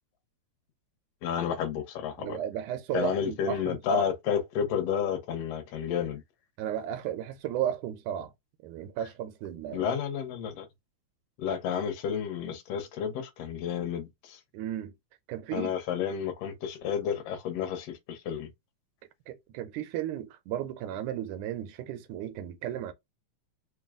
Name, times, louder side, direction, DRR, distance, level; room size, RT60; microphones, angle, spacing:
voice 1, 1.2-2.4 2.9-6.2 9.7-10.7 11.4-14.4 15.5-18.5, left 8 dB, 65° left, 1.8 m, -31 dB
voice 2, 2.2-4.1 6.6-8.3 8.6-9.9 11.5-11.6 14.5-14.9 15.3-15.7 19.3-22.9, right 10 dB, 85° right, 2.1 m, -34 dB
4.8 x 2.2 x 3.5 m
omnidirectional pair, 3.4 m